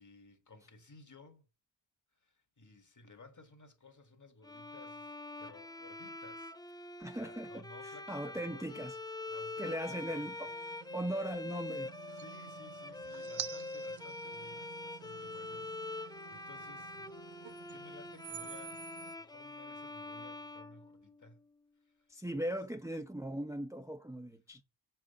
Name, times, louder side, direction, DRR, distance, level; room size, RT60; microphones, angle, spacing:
voice 1, 0.0-1.4 2.2-8.8 9.3-10.4 12.1-17.1 17.7-21.4 21.9-22.2, left 3 dB, 35° left, 1.8 m, -57 dB
Bowed string instrument, 4.4-21.4, left 2 dB, 10° left, 0.4 m, -45 dB
voice 2, 7.0-8.9 9.6-10.5 10.9-12.2 22.1-24.6, right 1 dB, 5° right, 0.8 m, -39 dB
sound 1, 9.6-19.1, right 11 dB, 65° right, 0.7 m, -50 dB
7.6 x 4.5 x 6.9 m
wide cardioid pair, 90°, 48 cm